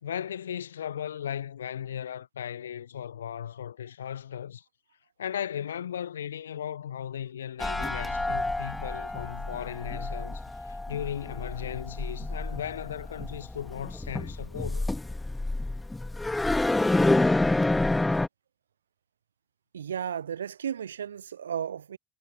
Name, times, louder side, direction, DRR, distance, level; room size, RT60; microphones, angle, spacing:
voice 1, 0.0-4.6 5.2-14.9, left 9 dB, 75° left, 1.0 m, -36 dB
sound 1, 7.6-18.3, left 2 dB, 10° left, 2.0 m, -28 dB
voice 2, 19.7-22.0, right 8 dB, 80° right, 0.6 m, -34 dB
figure-of-eight pair, 60°, 0 cm